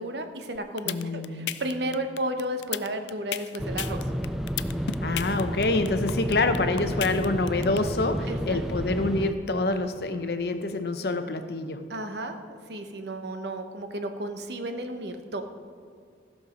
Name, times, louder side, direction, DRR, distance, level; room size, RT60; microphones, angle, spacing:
voice 1, 0.0-4.1 8.3-8.6 11.9-15.4, right 1 dB, 80° right, 7 dB, 1.0 m, -33 dB
sound 1, 0.6-7.8, left 11 dB, 90° left, 0.4 m, -33 dB
voice 2, 0.9-1.5 5.0-11.9, left 2 dB, 65° left, 9 dB, 0.7 m, -27 dB
sound 2, 3.6-9.3, equal, ahead, 0.4 m, -31 dB
15.5 x 6.5 x 5.1 m, 2.3 s
head